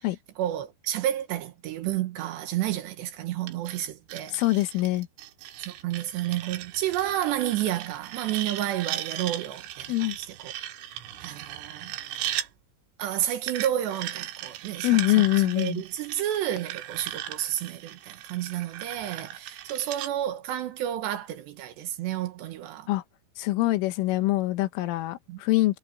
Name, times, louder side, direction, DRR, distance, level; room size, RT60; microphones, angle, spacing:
voice 1, 0.4-4.4 5.7-10.5 11.2-11.9 13.0-22.9 25.3-25.4, right 12 dB, 75° right, 3.0 m, -31 dB
sound 1, 3.5-12.5 13.5-20.1, right 12 dB, 90° right, 4.0 m, -37 dB
voice 2, 4.3-5.1 9.9-10.2 14.8-15.8 22.9-23.0 23.4-25.8, left 17 dB, 85° left, 3.6 m, -24 dB
omnidirectional pair, 5.6 m